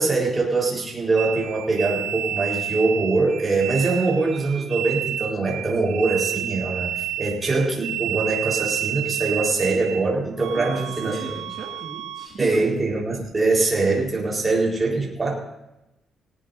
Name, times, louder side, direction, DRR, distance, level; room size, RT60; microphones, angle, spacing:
voice 1, 0.0-11.1 12.4-15.3, right 3 dB, 20° right, -3 dB, 4.2 m, -23 dB
sound 1, 1.2-10.0 10.4-12.3, right 12 dB, 85° right, 0.7 m, -30 dB
voice 2, 10.5-12.7, right 4 dB, 50° right, -3 dB, 2.3 m, -36 dB
20.0 x 17.5 x 2.7 m, 0.92 s
cardioid pair, 170°, 0 cm